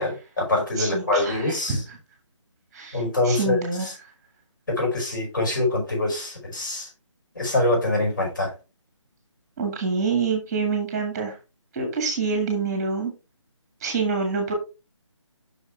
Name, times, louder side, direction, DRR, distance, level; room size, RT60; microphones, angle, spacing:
voice 1, 0.0-1.8 2.9-3.6 4.7-6.9 7.4-8.5, left 2 dB, 40° left, 5.2 m, -24 dB
voice 2, 0.8-2.0 2.7-3.9 9.6-11.3 11.7-13.1 13.8-14.5, right 4 dB, 10° right, 1.7 m, -26 dB
7.9 x 6.2 x 3.3 m
hypercardioid pair, 175°, 16 cm